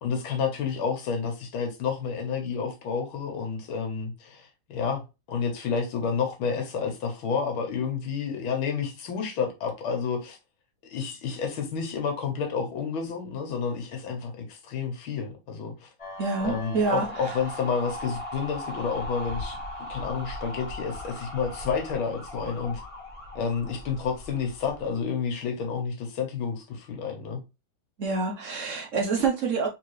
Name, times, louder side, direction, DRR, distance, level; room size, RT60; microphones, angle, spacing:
voice 1, 0.0-5.0 5.3-10.4 10.8-15.9 16.4-19.6 19.9-22.8 23.4-27.4, left 6 dB, 75° left, 1.9 m, -30 dB
sound 1, 16.0-25.0, left 1 dB, 25° left, 0.7 m, -38 dB
voice 2, 16.2-17.4 28.0-29.7, right 4 dB, 75° right, 0.7 m, -27 dB
3.7 x 3.7 x 3.1 m
omnidirectional pair, 2.3 m